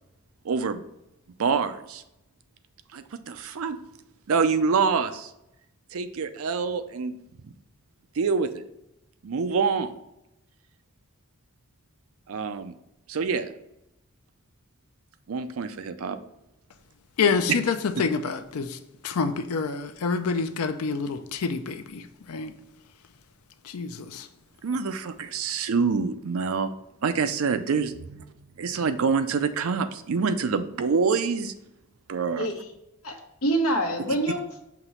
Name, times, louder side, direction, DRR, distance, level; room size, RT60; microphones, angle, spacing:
voice 1, 0.4-0.8 1.4-2.0 2.9-3.8 4.3-5.3 5.9-7.1 7.4-7.5 8.2-8.5 9.2-9.9 12.3-12.7 13.1-13.5 15.3-16.2 24.6-26.7 27.0-28.2 28.6-31.5 32.1-32.5, right 5 dB, 70° right, 10 dB, 0.5 m, -26 dB
voice 2, 17.2-18.8 19.0-22.5 23.6-24.3, left 5 dB, 90° left, 10 dB, 0.5 m, -27 dB
voice 3, 32.4-32.7 33.0-34.6, right 1 dB, 75° left, 2 dB, 1.1 m, -26 dB
5.9 x 2.9 x 5.6 m, 0.88 s
head